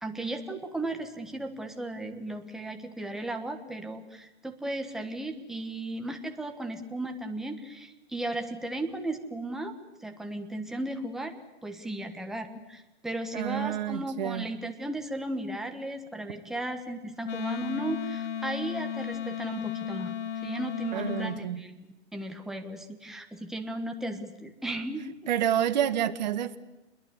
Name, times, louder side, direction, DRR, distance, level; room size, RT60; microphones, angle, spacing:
voice 1, 0.0-9.7 10.0-20.1 20.4-25.0, right 1 dB, ahead, 4 dB, 1.2 m, -35 dB
voice 2, 13.3-14.5 20.9-21.6 25.3-26.6, right 10 dB, 40° right, 9 dB, 1.6 m, -28 dB
Wind instrument woodwind instrument, 17.2-21.4, left 8 dB, 90° left, 1.1 m, -34 dB
28.0 x 21.5 x 8.2 m, 1.0 s
hypercardioid pair, 155°, 35 cm